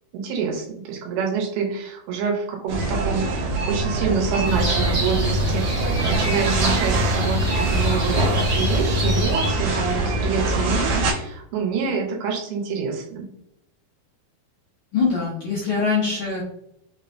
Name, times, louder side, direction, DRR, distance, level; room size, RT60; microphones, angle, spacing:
voice 1, 0.1-13.3, right 6 dB, 90° right, 0 dB, 2.7 m, -27 dB
sound 1, 2.7-11.1, right 2 dB, 70° right, 2.3 m, -24 dB
sound 2, 4.5-9.5, left 1 dB, 55° right, 1.4 m, -25 dB
voice 2, 14.9-16.4, left 5 dB, 80° left, -4 dB, 1.7 m, -23 dB
6.0 x 2.1 x 2.6 m, 0.77 s
omnidirectional pair, 4.5 m